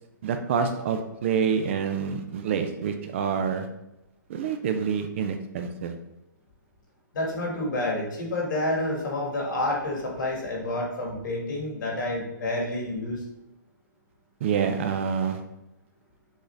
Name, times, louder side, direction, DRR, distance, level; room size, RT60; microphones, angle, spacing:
voice 1, 0.2-3.7 4.3-5.9 14.4-15.4, right 6 dB, 35° right, 7 dB, 0.4 m, -27 dB
voice 2, 7.1-13.2, left 1 dB, 65° left, 0 dB, 1.6 m, -29 dB
6.2 x 2.5 x 3.2 m, 0.91 s
hypercardioid pair, 160°, 11 cm